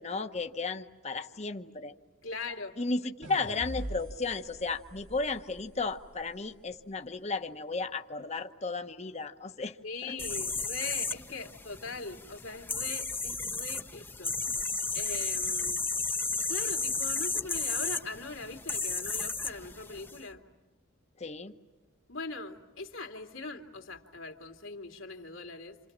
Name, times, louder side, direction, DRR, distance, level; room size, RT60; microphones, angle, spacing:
voice 1, 0.0-1.9 2.8-9.8 10.1-10.2 21.2-21.6, left 3 dB, 35° left, 7 dB, 1.0 m, -34 dB
voice 2, 2.2-2.8 9.8-14.6 14.9-15.8 16.5-20.4 22.1-25.8, left 3 dB, 75° left, 4 dB, 2.8 m, -41 dB
sound 1, 3.2-6.5, right 1 dB, 70° right, 2.0 m, -43 dB
sound 2, 10.2-20.2, left 4 dB, 10° left, 0.8 m, -33 dB
28.0 x 28.0 x 7.4 m, 1.3 s
head